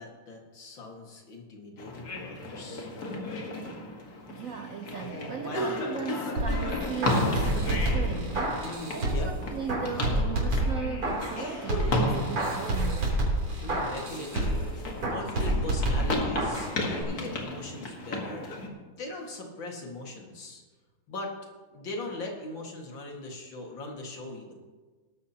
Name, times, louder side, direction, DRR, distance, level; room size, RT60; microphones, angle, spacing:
voice 1, 0.0-2.9 5.4-5.6 8.6-9.3 13.6-14.8 15.1-20.6 21.1-21.3 21.7-24.5, left 2 dB, 60° left, 0 dB, 2.6 m, -40 dB
sound 1, 1.8-18.7, left 1 dB, 45° left, 2.0 m, -34 dB
voice 2, 4.3-13.2, right 6 dB, 60° right, 3 dB, 0.9 m, -37 dB
sound 2, 6.4-9.4 9.7-11.4 11.7-14.7 15.0-16.7 17.0-17.1, right 1 dB, 85° right, 4.2 m, -28 dB
19.5 x 11.5 x 2.9 m, 1.3 s
omnidirectional pair, 2.4 m